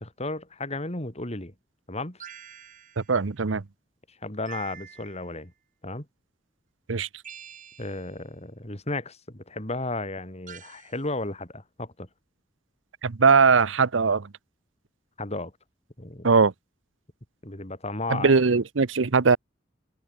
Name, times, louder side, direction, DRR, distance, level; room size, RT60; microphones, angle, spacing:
voice 1, 0.0-1.5 1.9-2.2 4.2-5.5 5.8-6.1 7.8-12.1 15.2-15.5 16.0-16.3 17.4-18.3, left 2 dB, 35° left, 3.5 m, -34 dB
sound 1, 2.2-3.2 4.5-5.4 7.2-8.1 10.5-11.0, right 8 dB, 45° right, 3.6 m, -46 dB
voice 2, 3.0-3.6 6.9-7.1 13.0-14.3 16.2-16.5 18.1-19.4, right 5 dB, 80° right, 0.8 m, -20 dB
head